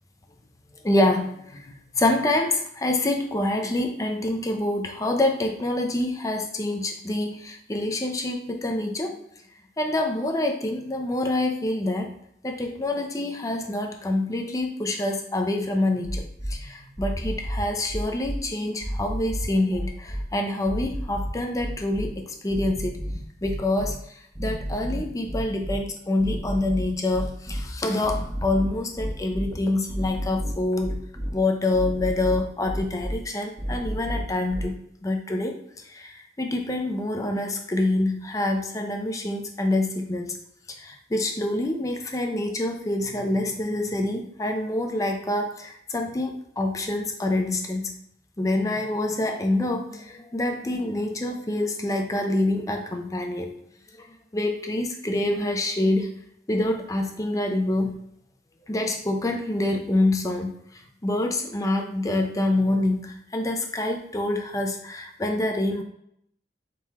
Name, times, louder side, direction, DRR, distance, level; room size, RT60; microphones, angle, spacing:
voice 1, 0.8-9.2 9.8-12.1 12.4-23.0 23.4-31.0 31.3-34.7 35.0-40.4 40.7-47.9 48.4-53.5 54.0-54.1 54.3-56.1 56.5-58.0 58.7-65.8, left 1 dB, 20° left, 3 dB, 0.4 m, -26 dB
sound 1, 16.0-16.5 17.0-18.4 18.8-20.2 20.6-22.1 22.5-23.9 24.3-25.8 26.2-27.6 28.0-29.5 29.9-31.3 31.7-33.1 33.6-34.6, equal, 15° right, 0.8 m, -30 dB
4.3 x 3.7 x 2.8 m, 0.72 s
head